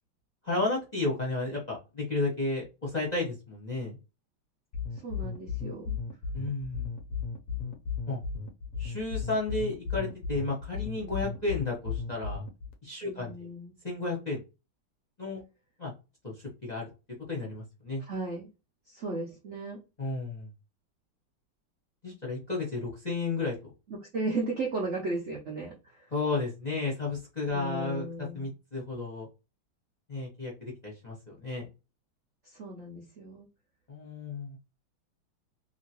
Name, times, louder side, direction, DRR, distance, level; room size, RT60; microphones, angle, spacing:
voice 1, 0.4-4.0 6.3-6.9 8.1-8.2 8.8-12.4 12.8-13.5 13.8-14.4 15.2-15.4 15.8-15.9 16.2-16.3 16.6-16.8 17.3-18.0 20.0-20.5 22.0-23.5 26.1-28.1 28.3-29.3 30.1-31.7 33.9-34.6, left 3 dB, 30° left, -2 dB, 0.8 m, -32 dB
sound 1, 4.7-12.7, left 6 dB, 70° left, 0.9 m, -35 dB
voice 2, 4.9-6.0 13.0-13.8 18.0-18.5 18.9-19.8 23.9-26.1 27.5-28.5 32.4-33.5, right 2 dB, 85° right, -2 dB, 0.6 m, -36 dB
2.9 x 2.7 x 2.8 m, 0.28 s
omnidirectional pair, 2.3 m